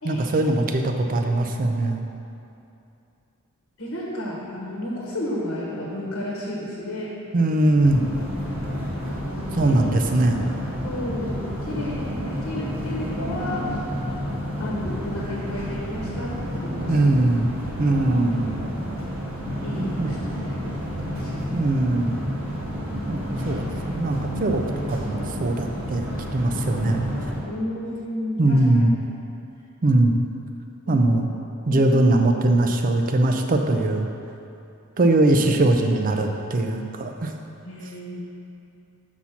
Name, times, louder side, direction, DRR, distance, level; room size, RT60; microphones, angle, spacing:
voice 1, 0.0-2.1 7.3-8.0 9.5-10.4 16.8-17.5 17.8-18.5 19.8-20.1 21.5-22.3 23.1-23.2 23.4-24.6 24.9-26.0 26.3-27.1 28.4-28.9 29.8-30.1 30.9-31.3 31.7-34.1 35.0-37.3, right 2 dB, 40° right, 4 dB, 0.5 m, -21 dB
voice 2, 3.8-7.1 8.9-9.9 10.8-13.7 14.6-17.1 17.9-18.2 19.6-20.2 20.5-21.7 27.4-28.6 30.9-31.0 31.6-31.9 37.6-38.2, left 1 dB, 65° left, -4 dB, 1.1 m, -33 dB
sound 1, 7.8-27.4, equal, 70° right, 1.5 m, -30 dB
6.1 x 4.1 x 5.8 m, 2.7 s
head